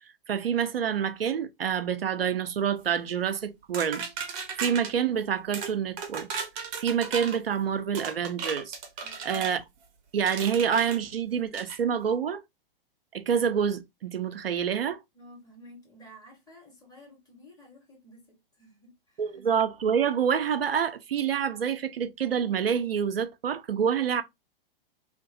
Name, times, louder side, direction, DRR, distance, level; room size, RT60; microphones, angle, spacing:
voice 1, 0.3-6.3 6.8-8.8 9.2-9.6 10.1-12.4 13.1-15.0 19.2-24.2, right 7 dB, 80° right, 0.5 m, -27 dB
sound 1, 3.7-4.9 5.5-5.7 6.0-7.4 7.9-9.6 10.3-11.0 11.5-11.8, right 6 dB, 30° right, 0.7 m, -35 dB
voice 2, 9.0-9.6 15.1-19.4, equal, 10° left, 1.2 m, -52 dB
2.8 x 2.5 x 2.5 m
figure-of-eight pair, 105°, 29 cm